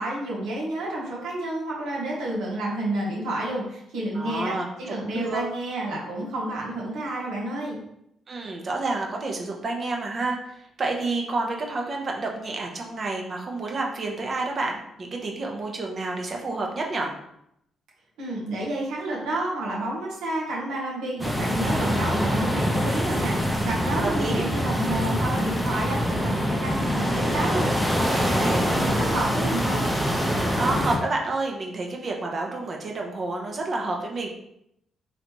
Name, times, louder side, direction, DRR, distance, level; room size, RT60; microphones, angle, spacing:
voice 1, 0.0-4.5 4.8-7.8 18.2-23.4 23.6-29.9, right 1 dB, 85° right, -4 dB, 1.2 m, -30 dB
voice 2, 4.1-5.4 8.3-17.1 23.8-24.4 28.1-28.7 30.6-34.3, right 3 dB, 45° right, 1 dB, 0.9 m, -29 dB
sound 1, 21.2-31.0, equal, ahead, 0.8 m, -24 dB
4.0 x 3.2 x 3.0 m, 0.77 s
cardioid pair, 90°, 0 cm